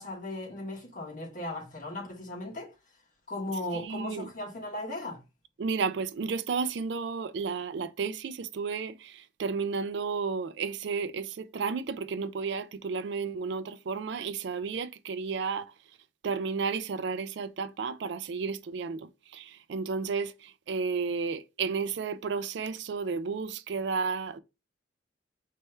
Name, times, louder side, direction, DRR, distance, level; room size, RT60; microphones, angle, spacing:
voice 1, 0.0-2.7 3.3-5.2, left 1 dB, 45° left, 1.4 m, -37 dB
voice 2, 3.7-4.3 5.6-15.7 16.2-24.4, right 5 dB, 65° right, 0.4 m, -32 dB
4.3 x 3.4 x 3.1 m
head